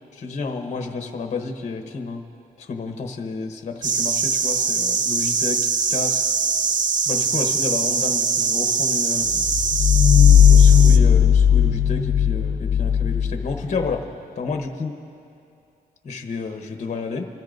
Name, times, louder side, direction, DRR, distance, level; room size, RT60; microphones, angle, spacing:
voice 1, 0.2-2.2 2.6-6.2 7.1-9.5 10.5-14.0 14.4-15.0 16.0-17.3, left 4 dB, 45° left, 5 dB, 1.1 m, -30 dB
sound 1, 3.8-11.0, right 5 dB, 55° right, 0.6 m, -22 dB
sound 2, 9.3-14.0, left 8 dB, 75° left, 0.7 m, -15 dB
29.5 x 13.5 x 2.6 m, 2.6 s
cardioid pair, 115°, 16 cm